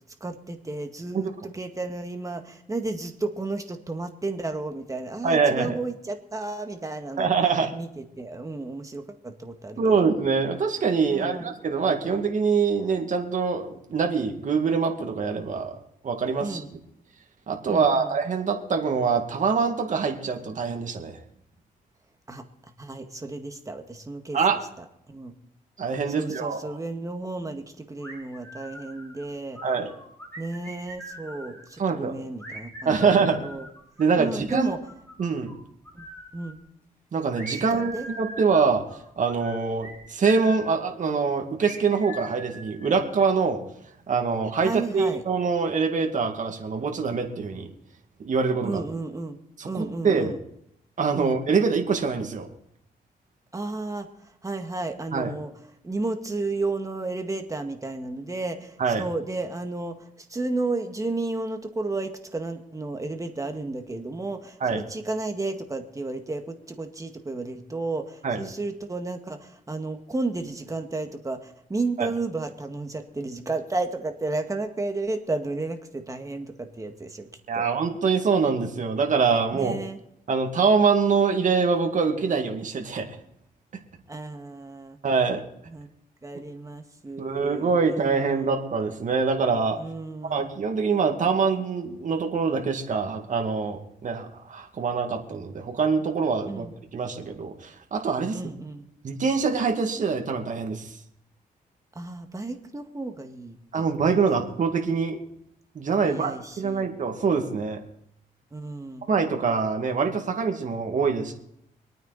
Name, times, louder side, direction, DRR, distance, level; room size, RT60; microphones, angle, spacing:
voice 1, 0.2-7.3 7.7-10.1 11.1-11.5 16.4-16.7 17.7-18.1 22.3-22.4 22.8-24.4 24.8-25.3 26.1-29.6 30.4-33.1 33.4-33.7 34.2-34.8 35.9-36.0 36.3-36.6 37.5-38.1 44.6-45.2 48.6-49.4 49.7-50.4 51.2-51.3 53.5-54.1 54.4-55.5 55.8-77.3 77.5-77.7 79.5-80.0 84.1-85.0 85.7-85.9 86.2-88.6 89.8-90.5 96.5-96.7 98.3-98.9 102.0-103.9 106.0-106.8 108.5-109.1, right 3 dB, 20° right, 5 dB, 1.9 m, -33 dB
voice 2, 5.2-5.8 7.2-7.7 9.8-15.7 16.0-16.6 17.5-21.2 24.3-24.6 25.8-26.6 29.6-29.9 31.8-32.1 32.9-33.4 34.0-34.7 35.2-35.5 37.1-37.9 38.2-38.8 39.2-43.6 44.1-47.7 48.2-48.8 49.6-50.3 51.0-52.5 55.1-55.3 58.8-59.0 64.6-64.8 68.2-68.4 72.0-72.1 77.5-79.8 80.3-83.1 85.0-85.4 87.2-89.8 90.3-96.7 96.9-98.4 99.0-101.0 103.7-105.2 105.7-107.8 109.0-111.3, right 5 dB, 50° right, 3 dB, 2.2 m, -24 dB
sound 1, 28.0-29.3 29.6-31.7 32.4-35.5 35.9-36.6 37.4-40.8 41.6-43.4, right 1 dB, 10° left, 6.6 m, -42 dB
25.0 x 9.3 x 4.2 m, 0.75 s
cardioid pair, 95°, 16 cm